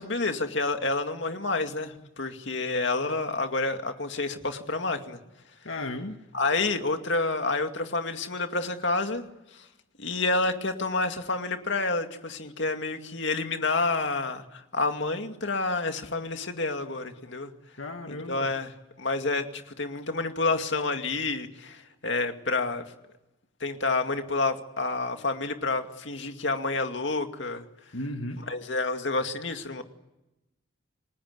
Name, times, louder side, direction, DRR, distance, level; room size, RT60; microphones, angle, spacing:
voice 1, 0.0-5.2 6.3-9.2 9.5-9.6 10.0-17.5 18.1-18.7 19.0-22.8 23.6-27.6 28.5-29.8, left 3 dB, 60° left, 2.3 m, -29 dB
voice 2, 5.6-6.2 17.8-18.5 27.9-28.4, left 1 dB, 80° left, 1.8 m, -35 dB
29.0 x 20.0 x 9.5 m
head